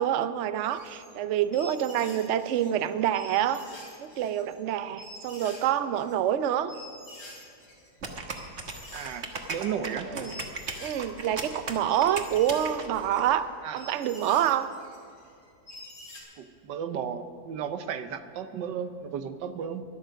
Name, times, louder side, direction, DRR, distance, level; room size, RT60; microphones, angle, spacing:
voice 1, 0.0-3.6 4.0-6.7 10.1-10.4 10.8-14.7, right 10 dB, 65° right, 12 dB, 0.7 m, -27 dB
sound 1, 0.7-1.1 1.4-2.9 3.1-4.5 5.0-5.7 5.9-16.2, left 1 dB, 85° left, 4.9 m, -47 dB
sound 2, 8.0-13.3, right 4 dB, 40° right, 1.4 m, -37 dB
voice 2, 8.9-10.1 13.6-13.8 16.4-19.8, right 8 dB, 85° right, 10 dB, 1.5 m, -34 dB
12.5 x 11.5 x 6.4 m, 2.5 s
omnidirectional pair, 1.9 m